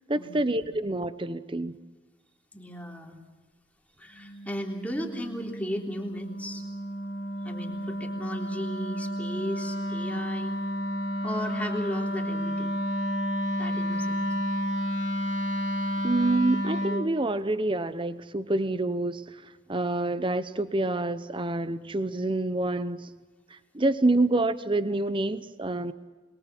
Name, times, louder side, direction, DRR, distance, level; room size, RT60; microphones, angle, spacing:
voice 1, 0.1-1.8 16.0-19.4 19.7-23.1 23.5-25.9, right 2 dB, 30° right, 0.9 m, -27 dB
voice 2, 2.5-3.2 4.0-6.6 7.4-10.6 11.2-12.7 13.6-14.3, equal, 10° left, 3.4 m, -36 dB
Wind instrument woodwind instrument, 4.2-17.1, equal, 75° left, 2.9 m, -31 dB
27.0 x 22.5 x 6.1 m
head